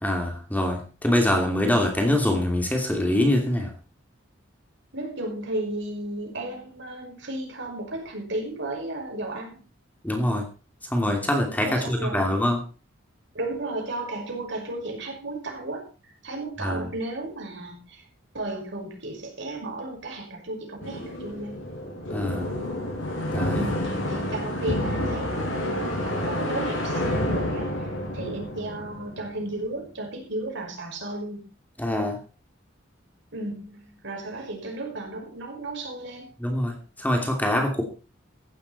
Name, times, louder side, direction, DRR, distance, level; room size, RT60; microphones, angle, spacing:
voice 1, 0.0-3.7 10.0-10.4 10.9-12.6 16.6-16.9 22.1-22.5 23.3-23.6 31.8-32.2 36.4-37.8, left 1 dB, 10° left, 2 dB, 2.7 m, -24 dB
voice 2, 4.9-9.6 11.6-12.3 13.3-18.1 18.3-21.6 23.5-27.9 28.1-31.4 33.3-36.3, right 2 dB, 65° right, 1 dB, 5.8 m, -34 dB
sound 1, 20.8-29.6, left 1 dB, 80° left, 6.9 m, -29 dB
15.5 x 12.0 x 4.2 m, 0.36 s
head